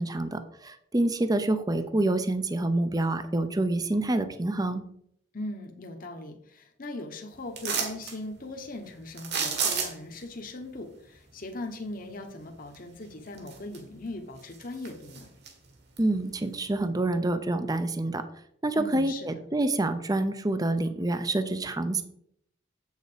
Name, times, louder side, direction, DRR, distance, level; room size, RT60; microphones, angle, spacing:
voice 1, 0.0-4.8 16.0-18.2 18.6-22.0, right 2 dB, 20° right, 10 dB, 0.6 m, -27 dB
voice 2, 5.3-15.3 18.8-19.4, left 2 dB, 45° left, 4 dB, 1.1 m, -39 dB
sound 1, 7.6-8.2 9.2-10.2 12.7-12.8 13.3-14.0 14.4-15.5 16.0-16.1, right 6 dB, 60° right, 1.9 m, -31 dB
7.9 x 6.5 x 5.0 m, 0.68 s
head